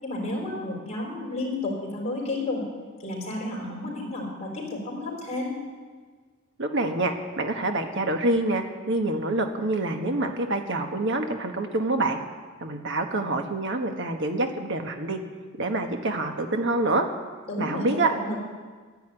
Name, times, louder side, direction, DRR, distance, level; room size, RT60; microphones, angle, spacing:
voice 1, 0.0-2.6 3.0-5.5 17.5-18.4, left 2 dB, 30° left, -3 dB, 4.4 m, -31 dB
voice 2, 6.6-12.2 12.6-15.2 15.6-17.1 17.6-18.1, right 2 dB, 60° right, 5 dB, 1.4 m, -26 dB
11.5 x 10.5 x 9.0 m, 1.5 s
head